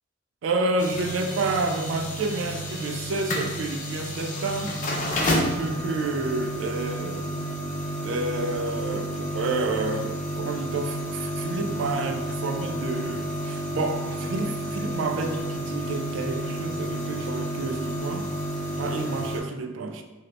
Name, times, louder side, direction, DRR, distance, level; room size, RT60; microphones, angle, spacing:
voice 1, 0.4-4.8 5.2-7.4 8.0-18.3 18.7-20.0, right 3 dB, 80° right, 6 dB, 0.3 m, -29 dB
sound 1, 0.8-19.4, equal, 40° left, 0.5 m, -31 dB
2.7 x 2.6 x 3.1 m, 1.1 s
head